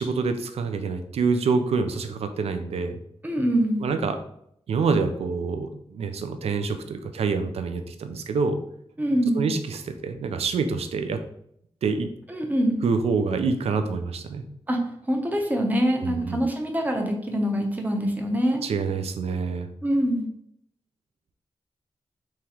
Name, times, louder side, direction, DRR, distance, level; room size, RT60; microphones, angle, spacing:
voice 1, 0.0-3.0 3.8-4.2 4.7-8.6 9.3-11.2 11.8-12.1 12.8-14.4 15.9-16.4 18.6-19.7, right 4 dB, 75° right, 8 dB, 0.4 m, -26 dB
voice 2, 3.2-3.9 9.0-9.5 12.3-12.8 14.7-14.8 15.1-18.6 19.8-20.3, equal, 15° right, 2 dB, 0.6 m, -24 dB
3.6 x 3.0 x 2.9 m, 0.71 s
wide cardioid pair, 135°, 10 cm